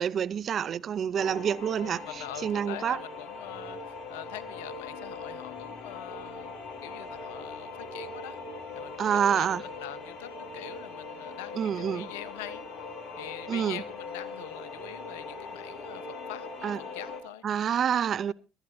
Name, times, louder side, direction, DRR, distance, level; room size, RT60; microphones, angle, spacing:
voice 1, 0.0-2.1 2.4-3.0 9.0-9.6 11.6-12.1 13.5-13.8 16.6-16.8 17.4-18.3, right 8 dB, 50° right, 0.6 m, -27 dB
sound 1, 1.2-17.2, left 3 dB, 55° left, 3.2 m, -41 dB
voice 2, 1.8-6.5 6.8-8.4 8.7-12.9 13.2-17.4, left 12 dB, 85° left, 1.0 m, -44 dB
20.0 x 12.5 x 2.7 m
hypercardioid pair, 65°, 0 cm